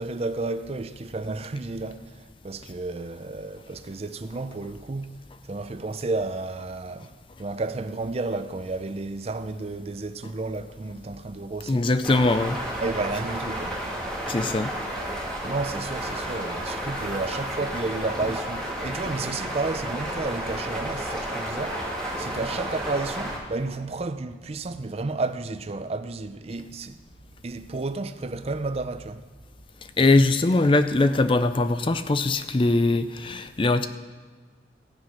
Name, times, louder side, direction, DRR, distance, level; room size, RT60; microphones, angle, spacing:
voice 1, 0.0-5.2 5.4-7.1 7.4-11.9 12.8-13.8 15.4-21.8 22.2-27.0 27.4-29.2, right 3 dB, 35° right, 0.5 m, -32 dB
voice 2, 11.7-12.6 14.3-14.7 30.0-33.9, left 2 dB, 30° left, 0.4 m, -21 dB
sound 1, 12.0-23.4, right 1 dB, 5° left, 2.0 m, -32 dB
15.0 x 7.9 x 5.8 m
head